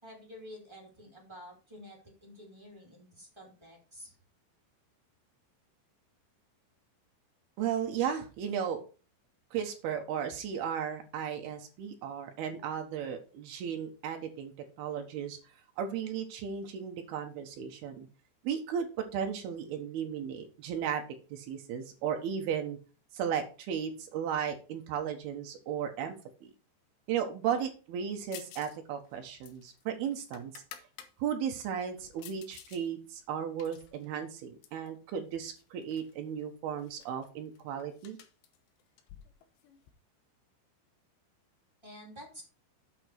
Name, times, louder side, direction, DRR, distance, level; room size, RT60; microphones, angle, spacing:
voice 1, 0.0-4.1 41.8-42.4, equal, 25° right, -1 dB, 0.5 m, -50 dB
voice 2, 7.6-8.8 9.5-14.5 14.8-15.4 15.8-18.1 18.4-21.0 21.3-22.8 23.1-26.5 27.1-30.6 31.2-38.2, right 8 dB, 70° right, 4 dB, 2.8 m, -35 dB
sound 1, 28.3-28.8 29.1-31.1 31.6-32.8 33.2-34.9 35.6-36.1 36.4-36.5 36.8-39.9, left 10 dB, 75° left, 2.9 m, -52 dB
8.2 x 6.2 x 4.5 m, 0.35 s
omnidirectional pair, 5.3 m